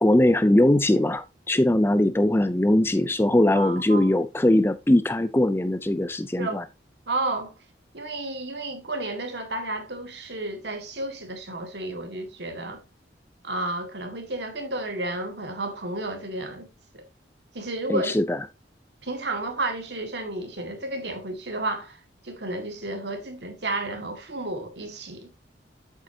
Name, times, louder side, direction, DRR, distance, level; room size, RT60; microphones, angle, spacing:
voice 1, 0.0-6.6 17.9-18.4, left 1 dB, 15° left, 0.5 m, -21 dB
voice 2, 3.5-4.1 6.4-6.6 7.1-7.5 7.9-12.8 13.4-16.7 16.9-17.0 17.5-18.2 19.0-25.3, right 2 dB, 70° right, 1.9 m, -32 dB
8.2 x 8.1 x 2.8 m
head